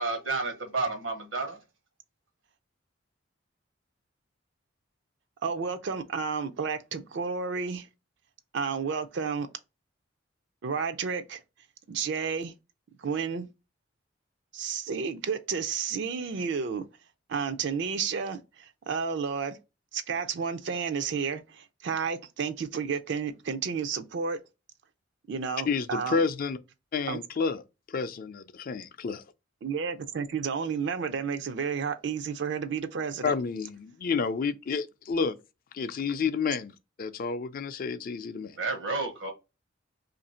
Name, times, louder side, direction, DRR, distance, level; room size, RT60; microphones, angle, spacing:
voice 1, 0.0-1.6 38.6-39.3, right 3 dB, 80° right, 1.1 m, -31 dB
voice 2, 5.4-7.9 8.5-9.5 10.6-11.4 11.9-12.5 13.0-13.5 14.5-16.9 17.3-19.6 19.9-24.4 25.3-26.2 27.1-27.2 29.6-33.3, right 6 dB, 65° right, 0.4 m, -31 dB
voice 3, 25.7-26.6 26.9-27.6 27.9-29.2 33.2-35.4 35.7-36.7 37.0-38.6, left 5 dB, 45° left, 0.4 m, -30 dB
2.7 x 2.6 x 4.2 m
head